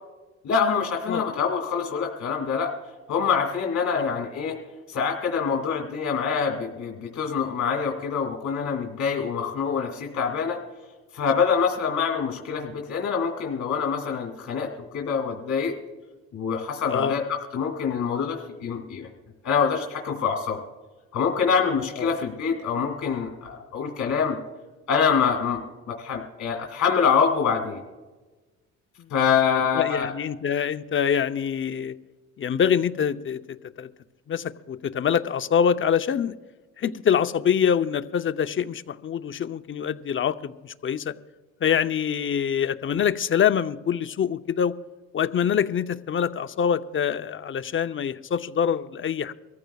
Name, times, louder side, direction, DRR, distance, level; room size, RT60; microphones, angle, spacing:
voice 1, 0.4-2.7 3.1-4.6 4.9-10.6 11.1-15.8 16.3-17.2 17.5-19.1 19.4-20.6 21.1-24.4 24.9-25.6 26.0-27.8 29.1-30.1, left 6 dB, 65° left, 1 dB, 2.4 m, -25 dB
voice 2, 29.8-31.9 32.4-33.4 33.8-33.9 34.3-36.4 36.8-41.1 41.6-44.8 45.1-49.3, left 8 dB, 40° left, 11 dB, 0.7 m, -25 dB
24.5 x 14.5 x 2.3 m, 1.2 s
cardioid pair, 90°, 30 cm